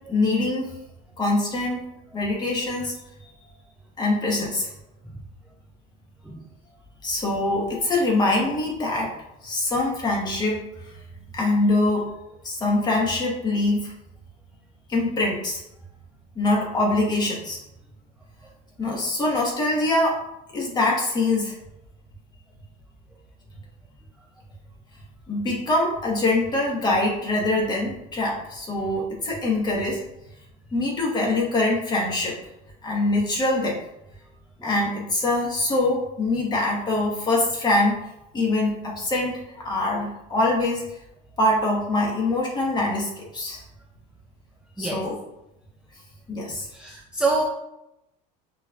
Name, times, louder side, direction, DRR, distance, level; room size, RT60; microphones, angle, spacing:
voice 1, 0.1-0.7 1.2-1.8 2.1-2.9 4.0-4.7 7.0-9.1 9.4-10.6 11.3-12.0 12.4-13.9 14.9-15.6 16.3-17.6 18.8-20.2 20.5-21.6 25.3-30.0 30.7-32.4 32.8-33.8 34.6-38.0 38.3-39.4 39.6-40.8 41.4-43.6 44.8-45.2 46.3-46.7, left 2 dB, 25° left, -2 dB, 1.4 m, -23 dB
voice 2, 46.7-47.4, right 3 dB, 5° right, -1 dB, 0.4 m, -26 dB
5.9 x 3.2 x 2.4 m, 0.87 s
cardioid pair, 135°, 18 cm